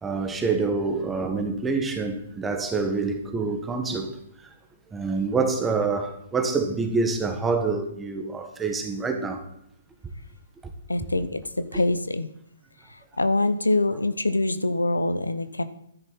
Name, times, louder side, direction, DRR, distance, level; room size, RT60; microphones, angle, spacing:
voice 1, 0.0-4.5 4.9-9.5 10.6-10.7, right 4 dB, 10° right, 1.6 m, -27 dB
voice 2, 10.9-12.3 12.9-15.6, left 2 dB, 90° left, 0.8 m, -25 dB
12.0 x 10.0 x 4.2 m
figure-of-eight pair, 125°, 0 cm